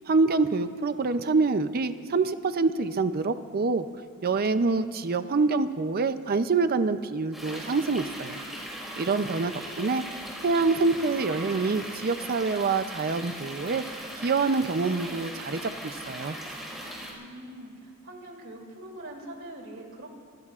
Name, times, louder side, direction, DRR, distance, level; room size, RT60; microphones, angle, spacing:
voice 1, 0.1-3.8 4.2-8.4 9.0-10.0 10.4-13.8 14.2-16.4, right 4 dB, 45° right, 11 dB, 0.5 m, -26 dB
sound 1, 7.3-17.1, equal, ahead, 4.8 m, -39 dB
voice 2, 17.2-20.1, right 1 dB, 60° right, 0 dB, 2.9 m, -43 dB
26.5 x 21.0 x 2.4 m, 2.4 s
head